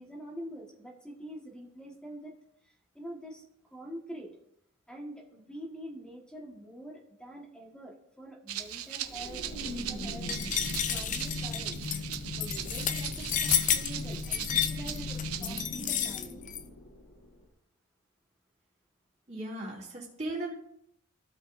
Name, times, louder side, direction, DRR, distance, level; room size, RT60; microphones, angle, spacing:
voice 1, 0.0-2.4 2.6-4.3 4.9-10.4 10.9-11.8 12.3-16.4, equal, 5° left, -1 dB, 1.3 m, -45 dB
Rattle (instrument), 8.5-15.7, right 11 dB, 80° right, 0.6 m, -40 dB
sound 1, 9.1-17.3, left 2 dB, 80° left, 1.5 m, -39 dB
sound 2, 10.3-16.6, left 9 dB, 35° left, 0.5 m, -31 dB
voice 2, 19.3-20.5, right 1 dB, 35° right, -5 dB, 2.4 m, -37 dB
15.0 x 5.2 x 2.5 m, 0.72 s
head